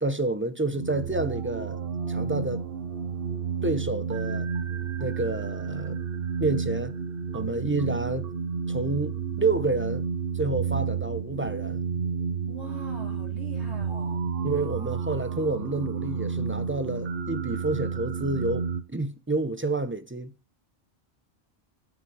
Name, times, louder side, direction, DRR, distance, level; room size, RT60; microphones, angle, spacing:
voice 1, 0.0-1.8 2.1-2.6 3.6-4.5 5.0-6.0 6.4-7.0 7.3-8.3 8.7-10.1 10.3-11.8 14.4-18.7 18.9-20.3, right 2 dB, 15° right, 0.6 m, -29 dB
sound 1, 0.7-18.8, right 6 dB, 60° right, 0.9 m, -31 dB
voice 2, 12.4-14.3, right 3 dB, 80° right, 2.9 m, -42 dB
7.9 x 6.1 x 7.9 m
omnidirectional pair, 1.1 m